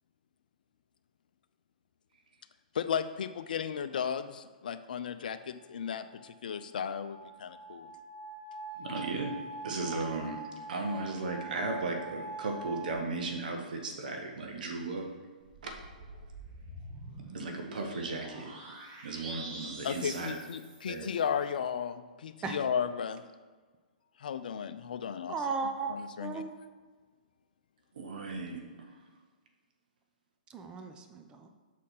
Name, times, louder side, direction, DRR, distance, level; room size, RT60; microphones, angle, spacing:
voice 1, 2.7-7.9 19.8-23.2 24.2-25.4 25.9-26.4, left 7 dB, 70° left, 11 dB, 0.5 m, -35 dB
sound 1, 5.8-12.9, right 3 dB, 45° left, 1.0 m, -44 dB
voice 2, 8.8-9.3 9.6-10.4 10.7-15.1 15.6-15.7 17.3-18.5 19.0-20.4 20.9-21.1 28.0-28.6, right 3 dB, 70° right, 3 dB, 1.0 m, -35 dB
sound 2, 15.4-21.2, right 2 dB, 35° right, 1.3 m, -47 dB
voice 3, 25.3-26.5 30.5-31.5, right 4 dB, 20° right, 6 dB, 0.6 m, -36 dB
6.5 x 4.2 x 5.7 m, 1.4 s
hypercardioid pair, 125°, 5 cm